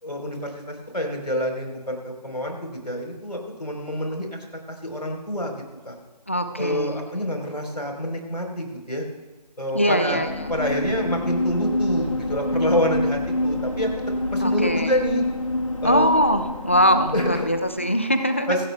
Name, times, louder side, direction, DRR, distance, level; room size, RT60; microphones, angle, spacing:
voice 1, 0.0-4.3 4.7-5.9 6.6-9.1 9.6-10.2 10.5-13.9 14.3-15.2 15.8-16.0 17.1-17.5 18.5-18.6, equal, 80° left, 2 dB, 4.0 m, -27 dB
voice 2, 6.3-7.0 9.7-10.3 14.4-14.9 15.8-18.6, equal, 20° left, 9 dB, 0.4 m, -22 dB
sound 1, 10.1-17.9, left 1 dB, 50° left, 1.5 m, -26 dB
24.5 x 11.0 x 2.3 m, 1.3 s
figure-of-eight pair, 160°, 21 cm